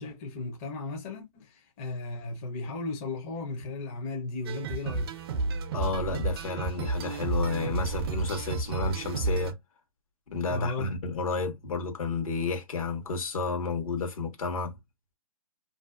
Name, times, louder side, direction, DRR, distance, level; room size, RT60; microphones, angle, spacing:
voice 1, 0.0-5.1 10.5-10.9, left 2 dB, 25° left, 0.6 m, -35 dB
sound 1, 4.5-9.5, right 3 dB, 45° right, 0.5 m, -31 dB
voice 2, 5.7-9.5 10.3-14.8, left 4 dB, 70° left, 1.1 m, -31 dB
2.6 x 2.3 x 2.3 m
hypercardioid pair, 150°, 18 cm